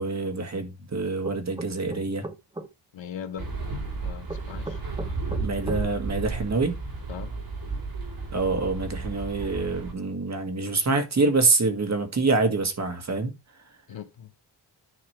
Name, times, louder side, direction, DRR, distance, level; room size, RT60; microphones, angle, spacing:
voice 1, 0.0-2.2 5.3-6.8 8.3-13.3, right 3 dB, 40° right, 1.9 m, -26 dB
sound 1, 1.2-2.7 4.3-5.8, right 2 dB, 10° right, 0.9 m, -36 dB
voice 2, 2.9-3.5 4.0-4.8 7.1-7.3 13.9-14.3, left 8 dB, 80° left, 1.5 m, -39 dB
sound 2, 3.4-9.9, right 3 dB, 55° right, 4.3 m, -33 dB
10.0 x 6.0 x 3.3 m
wide cardioid pair, 155°, 44 cm